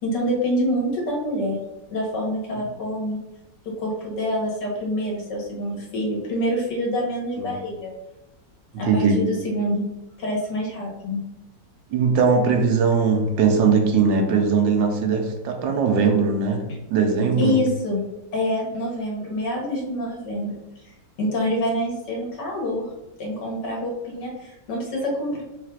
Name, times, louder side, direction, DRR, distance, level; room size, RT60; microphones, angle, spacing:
voice 1, 0.0-1.6 1.9-3.2 3.6-7.9 8.8-9.8 10.2-11.2 17.4-18.0 18.3-20.6 20.8-22.9 23.2-25.4, equal, 70° left, -2 dB, 1.8 m, -26 dB
voice 2, 8.8-9.2 11.9-17.6, right 5 dB, 85° right, 3 dB, 1.4 m, -20 dB
4.0 x 2.5 x 4.5 m, 0.96 s
omnidirectional pair, 2.0 m